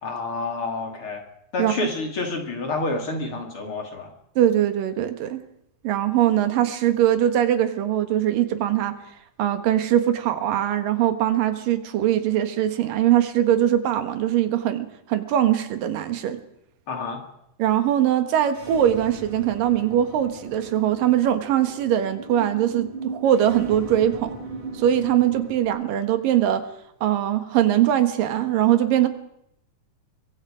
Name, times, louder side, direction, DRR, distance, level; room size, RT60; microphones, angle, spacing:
voice 1, 0.0-1.2 1.5-4.1 16.9-17.2, left 3 dB, 40° left, 3 dB, 3.2 m, -28 dB
voice 2, 4.4-5.4 5.8-9.0 9.4-16.4 17.6-24.4 24.7-26.6 27.0-29.1, right 11 dB, 90° right, 9 dB, 3.2 m, -21 dB
sound 1, 18.5-25.7, right 3 dB, 65° right, 7.7 m, -37 dB
24.0 x 23.0 x 5.1 m, 0.79 s
omnidirectional pair, 3.8 m